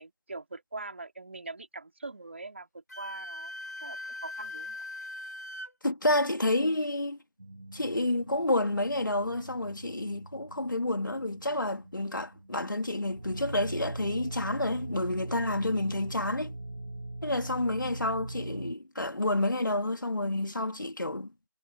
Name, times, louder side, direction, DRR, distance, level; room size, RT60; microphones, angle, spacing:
voice 1, 0.0-3.5 3.8-4.8, right 3 dB, 35° right, 3.7 m, -42 dB
Wind instrument woodwind instrument, 2.9-5.7, left 2 dB, 55° left, 3.9 m, -40 dB
voice 2, 5.8-7.2 7.7-16.5 17.2-21.3, left 1 dB, 70° left, 2.6 m, -29 dB
sound 1, 7.4-18.7, right 2 dB, 60° right, 7.3 m, -41 dB
figure-of-eight pair, 175°, 11 cm